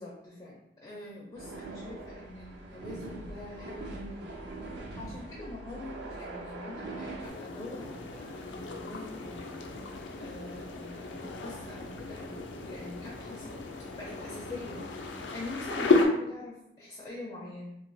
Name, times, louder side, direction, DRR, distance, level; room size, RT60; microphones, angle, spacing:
voice 1, 0.0-4.5 5.0-13.5 13.9-17.8, left 2 dB, 25° left, -5 dB, 0.4 m, -44 dB
sound 1, 1.3-7.3, right 2 dB, 65° right, 0.4 m, -42 dB
sound 2, 7.2-16.0, left 3 dB, 85° left, 0.4 m, -33 dB
3.0 x 2.1 x 2.5 m, 0.81 s
head